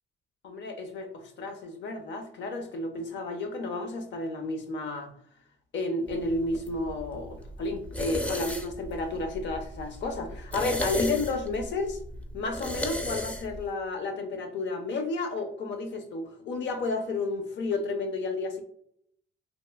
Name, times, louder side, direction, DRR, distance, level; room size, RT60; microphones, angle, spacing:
voice 1, 0.4-5.1 5.7-12.0 12.3-18.6, left 3 dB, 65° left, 0.6 m, -32 dB
sound 1, 6.1-13.7, left 1 dB, 5° left, 0.4 m, -36 dB
3.0 x 2.4 x 2.2 m
cardioid pair, 90°, 20 cm